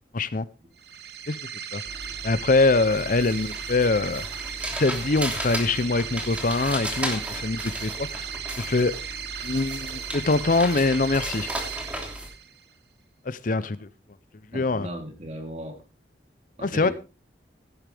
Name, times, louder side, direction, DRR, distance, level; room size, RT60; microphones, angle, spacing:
voice 1, 0.1-0.5 1.3-1.4 1.7-1.8 2.2-4.2 4.8-8.2 8.6-8.9 9.4-11.5 13.3-13.9 14.5-14.9 16.6-16.9, left 3 dB, 45° left, 0.6 m, -23 dB
sound 1, 0.8-12.7, right 8 dB, 60° right, 1.2 m, -36 dB
sound 2, 1.9-12.3, equal, 5° right, 3.0 m, -35 dB
voice 2, 14.5-15.8 16.6-16.9, equal, 40° right, 3.6 m, -36 dB
17.0 x 11.0 x 3.4 m
head